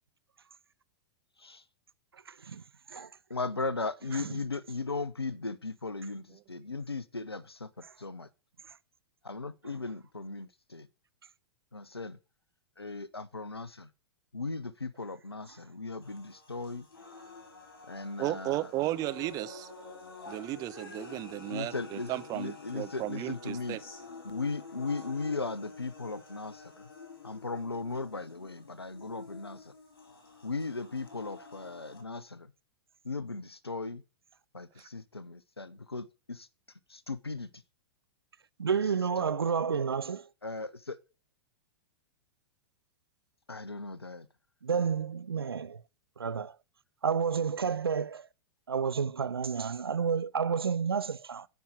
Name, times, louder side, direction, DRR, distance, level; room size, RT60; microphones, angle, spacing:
voice 1, 2.1-2.6 2.9-3.1 4.1-4.4 7.8-7.9 8.7-8.8 38.6-40.3 44.6-45.8 46.2-46.6 47.0-48.3 48.7-51.5, right 6 dB, 75° right, 0.5 m, -30 dB
voice 2, 3.3-7.7 8.0-8.3 9.2-10.9 11.7-12.2 12.8-13.9 14.3-16.9 17.9-18.7 21.5-23.8 24.2-26.9 27.2-29.7 30.4-32.5 33.0-34.0 34.5-36.5 36.9-37.5 39.2-39.3 40.4-41.0 43.5-44.3, left 3 dB, 85° left, 0.6 m, -37 dB
sound 1, 16.0-32.0, left 3 dB, 65° left, 3.2 m, -49 dB
voice 3, 18.2-19.7 20.3-23.8 34.8-34.9, right 16 dB, 30° right, 0.6 m, -34 dB
9.2 x 5.4 x 6.0 m
figure-of-eight pair, 100°, 13 cm